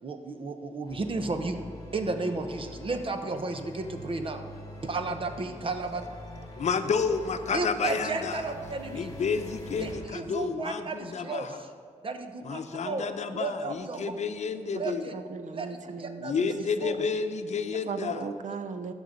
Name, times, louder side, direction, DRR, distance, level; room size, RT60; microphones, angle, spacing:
voice 1, 0.0-1.6 1.9-4.5 4.8-6.0 7.5-9.1 9.8-11.7 12.0-14.1 14.8-15.1 15.5-15.7 16.0-16.3 16.8-17.0, right 3 dB, 45° right, 7 dB, 0.9 m, -33 dB
sound 1, 0.9-10.1, left 1 dB, 25° left, 1.8 m, -44 dB
voice 2, 6.6-8.4 8.9-11.6 12.4-15.1 16.2-18.3, left 5 dB, 65° left, 8 dB, 0.7 m, -30 dB
voice 3, 14.7-16.7 17.0-17.1 17.9-18.9, right 5 dB, 75° right, 9 dB, 0.8 m, -37 dB
15.0 x 6.4 x 5.2 m, 2.3 s
wide cardioid pair, 120°, 13 cm